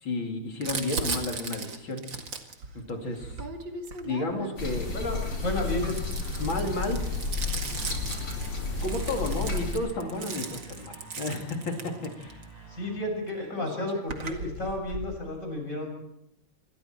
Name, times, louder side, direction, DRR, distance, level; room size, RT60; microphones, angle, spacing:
voice 1, 0.0-2.0 2.7-3.4 4.1-5.0 6.4-7.1 8.8-12.4 12.9-13.0, left 2 dB, 65° left, 3 dB, 3.7 m, -32 dB
Crumpling crinkling, 0.6-4.7 5.3-12.4 13.3-13.4 13.6-15.1, right 4 dB, 65° right, 2.8 m, -37 dB
sound 1, 4.6-9.7, left 3 dB, 90° left, 5.2 m, -32 dB
voice 2, 4.9-6.0 12.7-15.9, left 1 dB, 35° left, 2 dB, 7.1 m, -32 dB
sound 2, 6.0-13.8, right 2 dB, 15° right, 7.3 m, -50 dB
27.0 x 22.5 x 4.5 m, 0.79 s
omnidirectional pair, 2.3 m